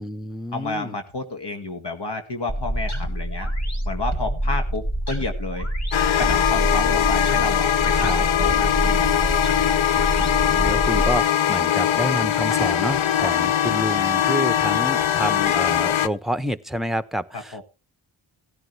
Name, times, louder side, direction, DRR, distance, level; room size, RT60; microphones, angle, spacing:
voice 1, 0.0-1.0 7.9-8.2 10.0-17.6, equal, ahead, 12 dB, 1.1 m, -29 dB
voice 2, 0.5-3.5 3.9-5.7 6.2-9.2 17.3-17.6, left 3 dB, 60° left, 6 dB, 2.1 m, -30 dB
sound 1, 2.5-11.2, right 1 dB, 35° left, 4.6 m, -26 dB
sound 2, 5.9-16.1, left 10 dB, 75° left, 0.8 m, -21 dB
16.5 x 10.5 x 3.3 m, 0.30 s
cardioid pair, 45°, 47 cm